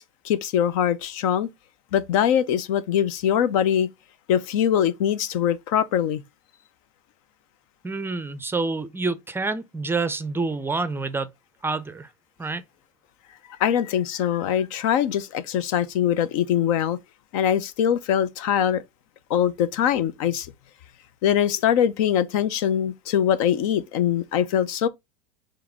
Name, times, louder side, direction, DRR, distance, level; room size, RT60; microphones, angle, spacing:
voice 1, 0.0-1.5 1.9-3.9 4.3-6.2 13.6-17.0 17.3-18.8 19.3-20.5 21.2-24.9, left 9 dB, 65° left, 0.6 m, -22 dB
voice 2, 7.8-11.3 11.6-12.1 12.4-12.6, right 3 dB, 10° right, 0.5 m, -27 dB
4.8 x 3.1 x 3.4 m
hypercardioid pair, 90°, 18 cm